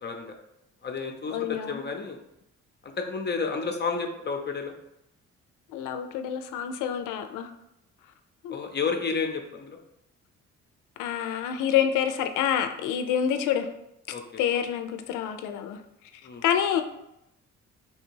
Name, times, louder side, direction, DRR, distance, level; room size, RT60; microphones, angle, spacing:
voice 1, 0.0-0.3 0.8-2.2 2.8-4.7 8.5-9.8 14.1-14.4 16.2-16.4, left 5 dB, 35° left, 4 dB, 0.6 m, -31 dB
voice 2, 1.3-1.8 5.7-7.5 8.4-8.6 11.0-13.7 14.4-15.8 16.4-16.8, left 9 dB, 90° left, 7 dB, 0.5 m, -27 dB
3.3 x 2.8 x 4.4 m, 0.85 s
cardioid pair, 90°, 30 cm